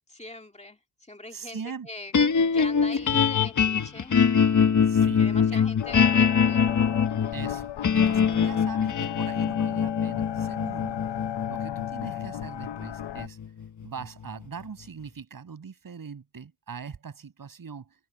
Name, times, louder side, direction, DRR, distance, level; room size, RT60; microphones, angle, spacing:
voice 1, 0.1-2.1 2.5-4.2 5.0-6.6, left 2 dB, 15° left, 2.3 m, -43 dB
voice 2, 1.3-1.9 3.1-3.3 4.9-5.2 5.5-5.6 7.3-11.1 11.5-13.4 13.8-17.9, right 6 dB, 55° right, 7.0 m, -41 dB
sound 1, 2.1-14.4, left 6 dB, 45° left, 1.2 m, -24 dB
sound 2, 5.8-13.3, left 11 dB, 85° left, 0.8 m, -35 dB
open air
wide cardioid pair, 140°, 40 cm